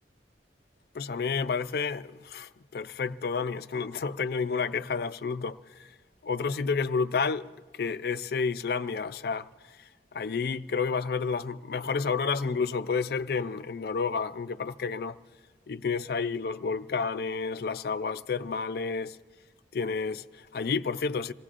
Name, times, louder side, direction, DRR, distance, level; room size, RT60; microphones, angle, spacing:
voice 1, 0.9-5.9 6.2-9.5 10.1-15.2 15.7-19.2 19.7-21.3, left 5 dB, 60° left, 0.4 m, -30 dB
26.5 x 17.5 x 2.5 m
head